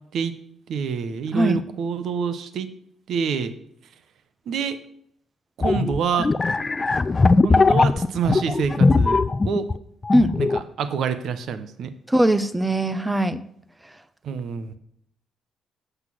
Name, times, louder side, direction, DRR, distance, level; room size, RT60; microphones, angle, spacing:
voice 1, 0.7-2.7 3.1-3.5 4.5-4.8 5.6-6.3 7.4-9.7 10.4-11.9 14.2-14.8, right 6 dB, 70° right, 12 dB, 0.8 m, -27 dB
voice 2, 1.3-1.6 10.1-10.3 12.1-13.4, right 1 dB, 10° right, 14 dB, 0.7 m, -20 dB
sound 1, 5.6-9.8 10.0-10.6, left 3 dB, 25° left, 0.4 m, -19 dB
8.0 x 6.0 x 7.4 m, 0.70 s
cardioid pair, 90°, 0 cm